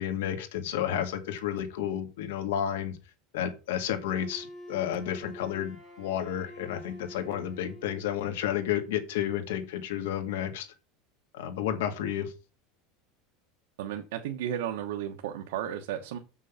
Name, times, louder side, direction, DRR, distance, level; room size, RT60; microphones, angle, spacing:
voice 1, 0.0-3.0 3.3-10.7 11.3-12.3, left 10 dB, 90° left, 7 dB, 1.9 m, -31 dB
Wind instrument woodwind instrument, 4.1-8.2, left 1 dB, 5° left, 3.8 m, -46 dB
voice 2, 13.8-16.2, right 10 dB, 85° right, 4 dB, 1.2 m, -34 dB
7.6 x 6.2 x 5.7 m, 0.32 s
supercardioid pair, 170°, 0 cm